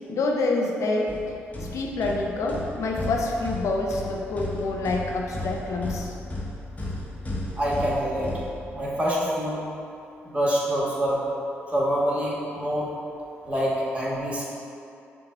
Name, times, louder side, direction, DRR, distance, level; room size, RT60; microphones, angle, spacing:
voice 1, 0.1-1.2 1.6-6.1, left 2 dB, 70° left, 0 dB, 0.5 m, -27 dB
sound 1, 1.1-9.1, left 1 dB, 25° left, 1.0 m, -35 dB
voice 2, 7.6-8.3 8.7-9.6 10.2-11.2 11.7-12.9 13.4-14.5, equal, 20° right, -6 dB, 1.5 m, -26 dB
5.9 x 2.3 x 3.8 m, 2.6 s
supercardioid pair, 50°, 5 cm